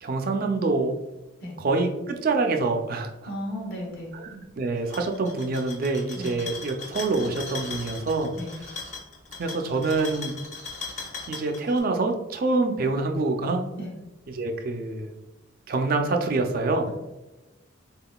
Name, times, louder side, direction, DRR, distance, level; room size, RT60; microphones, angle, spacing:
voice 1, 0.0-1.0 1.6-3.1 4.1-8.3 9.4-10.3 11.3-13.6 14.3-15.1 15.7-16.9, right 3 dB, 45° right, 4 dB, 0.4 m, -26 dB
voice 2, 3.2-4.1 6.1-6.4 8.4-8.6 13.8-13.9, equal, 55° left, -2 dB, 1.1 m, -34 dB
sound 1, 4.8-11.8, left 4 dB, 35° left, 0.7 m, -39 dB
4.1 x 3.6 x 2.2 m, 1.1 s
head